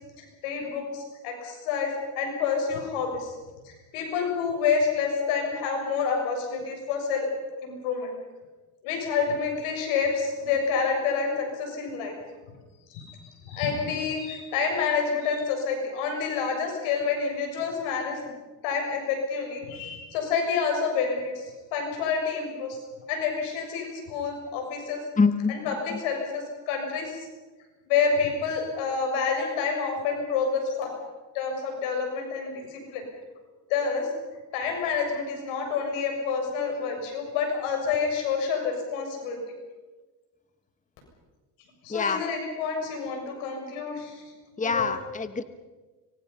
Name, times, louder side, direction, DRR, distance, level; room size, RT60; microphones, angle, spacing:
voice 1, 0.2-3.3 3.6-7.3 7.6-8.1 8.8-12.1 12.9-18.3 18.6-21.4 21.7-22.8 23.1-25.0 25.5-27.3 27.9-30.9 31.3-33.0 33.7-34.1 34.5-39.4 41.8-44.2 44.6-44.9, left 5 dB, 90° left, 3 dB, 7.0 m, -28 dB
voice 2, 25.2-25.8 41.9-42.2 44.6-45.4, left 4 dB, 15° left, 10 dB, 1.2 m, -25 dB
25.5 x 23.5 x 5.6 m, 1.3 s
cardioid pair, 95°, 49 cm